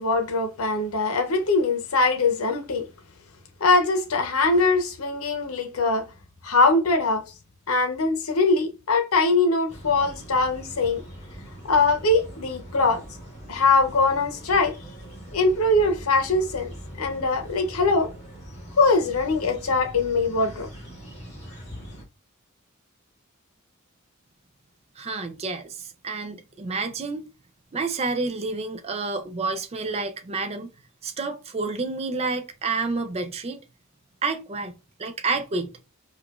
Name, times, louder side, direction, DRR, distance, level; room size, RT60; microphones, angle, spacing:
voice 1, 0.0-2.9 3.6-6.1 6.4-7.2 7.7-11.0 11.6-13.0 13.5-14.8 15.3-16.7 17.0-18.1 18.8-20.7, left 3 dB, 80° left, 0.8 m, -22 dB
sound 1, 9.7-22.0, equal, 30° left, 1.7 m, -42 dB
voice 2, 25.0-27.3 27.7-30.7 31.0-33.6 34.2-34.7 35.0-35.7, right 3 dB, 30° right, 0.4 m, -29 dB
4.8 x 2.3 x 2.3 m
head